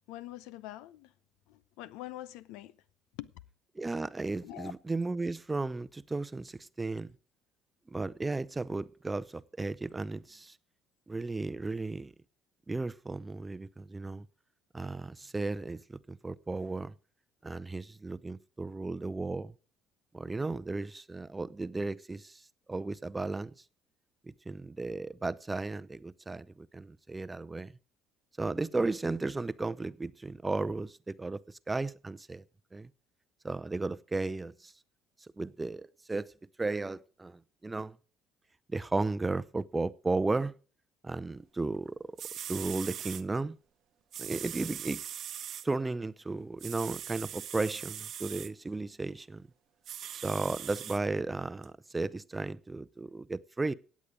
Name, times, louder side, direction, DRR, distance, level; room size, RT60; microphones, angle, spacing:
voice 1, 0.1-1.1 1.5-2.8 3.2-3.3 4.4-4.7, left 15 dB, 70° left, 0.6 m, -44 dB
voice 2, 3.7-7.1 7.9-10.6 11.1-12.1 12.7-14.3 14.7-16.9 17.4-19.5 20.1-22.4 22.7-23.5 24.2-27.7 28.4-32.4 32.7-32.9 33.4-34.7 35.4-36.3 36.6-38.0 38.7-40.5 41.0-42.0 42.5-43.6 44.2-45.0 45.6-49.5 50.1-53.7, right 3 dB, 20° right, 0.7 m, -34 dB
sound 1, 41.9-42.0 42.2-43.2 44.1-45.7 46.6-48.5 49.8-51.0 51.6-51.7, right 10 dB, 55° right, 0.9 m, -41 dB
16.5 x 8.5 x 5.0 m
hypercardioid pair, 60°, 0 cm